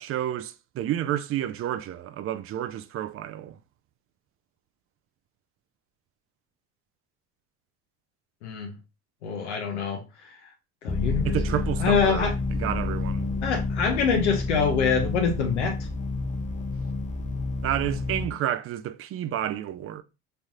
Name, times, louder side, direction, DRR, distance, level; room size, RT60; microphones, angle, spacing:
voice 1, 0.0-3.6 11.2-13.3 17.6-20.0, right 11 dB, 40° right, 0.4 m, -30 dB
voice 2, 9.2-10.3 10.8-11.4 11.8-12.3 13.4-15.8, left 6 dB, 90° left, 0.7 m, -25 dB
sound 1, 10.9-18.3, left 3 dB, 20° left, 0.6 m, -29 dB
4.1 x 3.3 x 2.3 m
hypercardioid pair, 65°, 34 cm